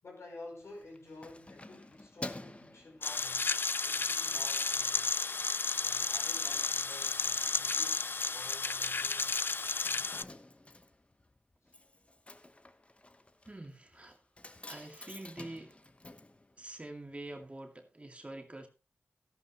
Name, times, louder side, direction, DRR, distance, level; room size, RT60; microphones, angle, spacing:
voice 1, 0.0-3.6 3.8-5.2 5.7-9.4 9.9-10.5 11.6-11.8, left 2 dB, 75° left, 5.2 m, -52 dB
Keys jangling, 0.6-3.7 4.2-4.4 4.7-5.4 5.7-5.8 6.0-6.1 6.3-17.2 17.4-17.5, left 2 dB, 25° left, 1.0 m, -51 dB
bm Hard Drive, 3.0-10.2, left 4 dB, 50° left, 0.5 m, -32 dB
voice 2, 13.4-14.2 14.7-15.8 16.6-18.7, right 2 dB, 25° right, 2.2 m, -46 dB
13.0 x 11.5 x 2.9 m
cardioid pair, 60°, 5 cm